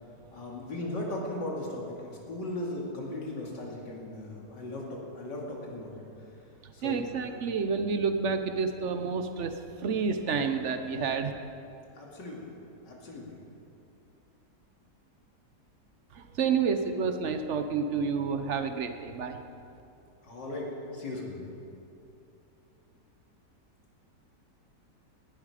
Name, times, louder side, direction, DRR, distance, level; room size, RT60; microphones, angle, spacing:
voice 1, 0.3-6.0 6.7-7.4 11.9-12.5 12.8-13.4 20.2-21.4, left 1 dB, 85° left, -2 dB, 3.1 m, -37 dB
voice 2, 6.8-9.5 9.8-11.3 16.1-19.4, right 5 dB, 50° right, 7 dB, 1.0 m, -29 dB
19.0 x 11.0 x 5.0 m, 2.8 s
omnidirectional pair, 1.8 m